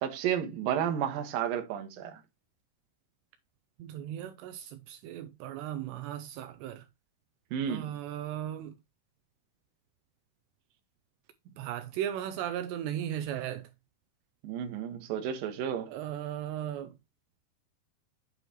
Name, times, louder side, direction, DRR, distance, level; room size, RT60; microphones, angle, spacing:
voice 1, 0.0-2.2 7.5-7.9 14.4-15.9, right 9 dB, 65° right, 2.7 m, -32 dB
voice 2, 3.8-6.9 7.7-8.7 11.6-13.7 15.9-16.9, right 11 dB, 80° right, 2.7 m, -36 dB
9.0 x 7.8 x 2.9 m
omnidirectional pair, 5.0 m